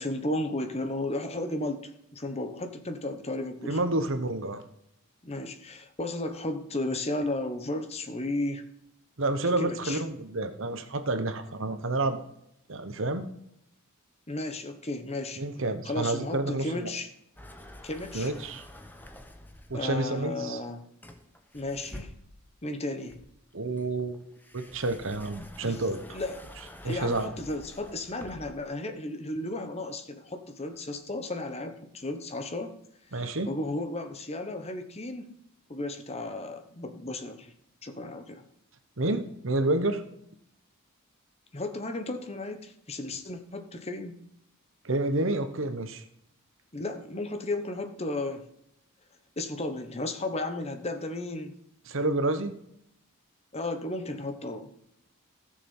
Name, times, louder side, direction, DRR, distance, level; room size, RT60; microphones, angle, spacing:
voice 1, 0.0-3.8 5.2-8.6 9.6-10.0 14.3-15.4 15.8-17.1 17.8-18.3 19.7-20.8 21.5-22.1 22.6-23.2 25.4-25.8 26.1-26.4 26.8-32.7 33.1-35.3 35.7-37.5 37.8-38.4 41.5-44.2 46.7-48.5 49.4-51.6 53.5-54.7, left 2 dB, 30° left, 7 dB, 1.1 m, -34 dB
voice 2, 3.7-4.6 9.2-12.2 12.7-13.3 15.4-16.9 18.1-18.6 19.7-20.6 23.5-24.2 24.5-26.2 26.8-27.3 33.1-33.5 39.0-40.0 44.8-46.0 51.9-52.5, right 2 dB, 60° right, 9 dB, 1.1 m, -29 dB
sound 1, 17.4-19.9 21.0-22.5 23.1-28.7, left 1 dB, 10° left, 1.0 m, -48 dB
15.5 x 6.7 x 5.6 m, 0.75 s
head